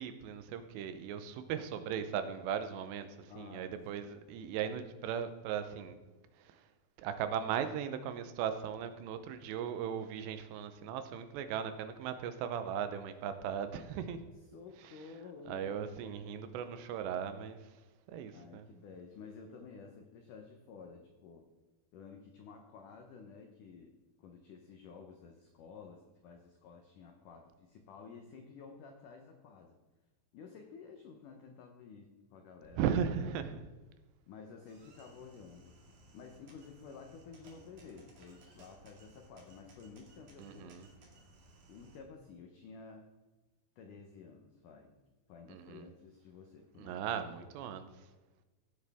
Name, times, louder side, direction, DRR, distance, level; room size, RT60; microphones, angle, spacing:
voice 1, 0.0-6.0 6.4-6.7 7.0-14.2 15.5-17.6 18.1-18.7 32.8-33.7 40.4-40.9 45.5-45.9 46.8-47.8, right 8 dB, 80° right, 10 dB, 2.9 m, -37 dB
voice 2, 3.3-3.7 4.0-4.1 14.5-15.9 18.3-21.5 21.9-29.8 30.3-32.9 33.4-33.7 34.3-35.8 36.1-40.9 41.7-43.1 43.8-45.0 45.3-47.1, left 5 dB, 90° left, 4 dB, 1.8 m, -52 dB
sound 1, 34.6-42.0, right 2 dB, 50° right, 3.2 m, -60 dB
16.5 x 7.9 x 3.5 m, 1.2 s
omnidirectional pair, 5.0 m